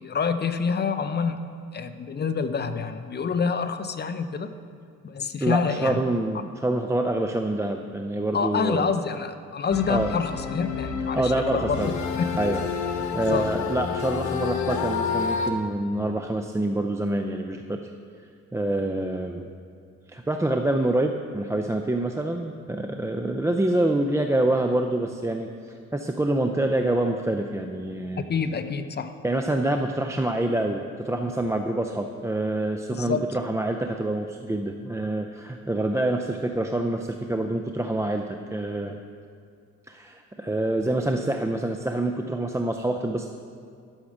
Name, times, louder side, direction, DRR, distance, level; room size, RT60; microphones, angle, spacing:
voice 1, 0.0-1.5 1.7-4.5 5.0-6.0 8.3-11.9 13.2-13.5 28.2-29.1 32.9-33.2, left 5 dB, 35° left, 10 dB, 0.7 m, -27 dB
voice 2, 5.4-8.9 9.9-10.1 11.1-11.9 12.4-12.6 12.9-17.8 18.5-19.5 20.1-25.5 25.9-28.2 29.2-39.0 39.9-43.3, right 1 dB, 10° right, 4 dB, 0.5 m, -26 dB
sound 1, 9.7-15.5, left 6 dB, 70° left, 1.1 m, -29 dB
11.5 x 6.4 x 6.2 m, 2.2 s
cardioid pair, 90°, 30 cm